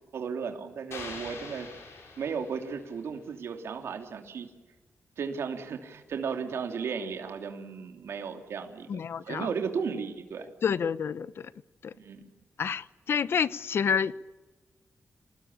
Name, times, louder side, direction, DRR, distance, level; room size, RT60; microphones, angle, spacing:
voice 1, 0.1-1.7 2.2-4.5 5.2-10.5 12.0-12.2, right 6 dB, 85° right, 2.9 m, -35 dB
sound 1, 0.9-3.1, left 4 dB, 85° left, 7.4 m, -44 dB
voice 2, 8.9-9.5 10.6-11.5 11.8-11.9 12.6-14.1, left 7 dB, 70° left, 0.9 m, -29 dB
27.0 x 19.5 x 8.7 m
cardioid pair, 95°, 4 cm